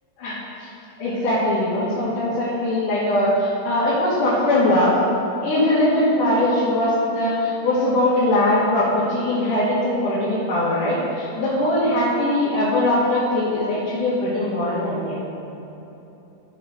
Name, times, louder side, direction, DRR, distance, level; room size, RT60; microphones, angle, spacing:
voice 1, 0.2-0.7 1.0-5.0 5.4-15.2, left 1 dB, 85° left, -10 dB, 3.7 m, -21 dB
14.0 x 5.5 x 6.8 m, 3.0 s
omnidirectional pair, 3.5 m